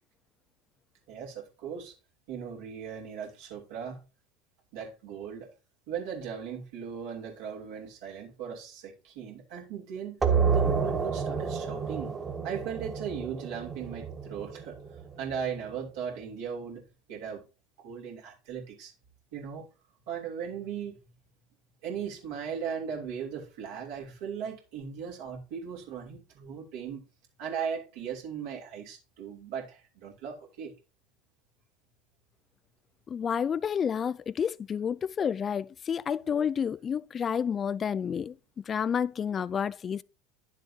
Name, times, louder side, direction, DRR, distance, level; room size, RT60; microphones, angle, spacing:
voice 1, 1.1-1.9 2.3-4.0 4.7-5.5 5.9-10.2 10.5-12.1 12.4-14.8 15.2-16.8 17.1-17.4 17.8-18.9 19.3-19.7 20.1-21.0 21.8-27.0 27.4-30.7, right 7 dB, 60° right, 2.9 m, -38 dB
sound 1, 10.2-15.6, right 6 dB, 25° right, 1.8 m, -30 dB
voice 2, 33.1-40.0, left 7 dB, 30° left, 0.4 m, -30 dB
11.0 x 7.3 x 2.8 m
figure-of-eight pair, 75°, 0 cm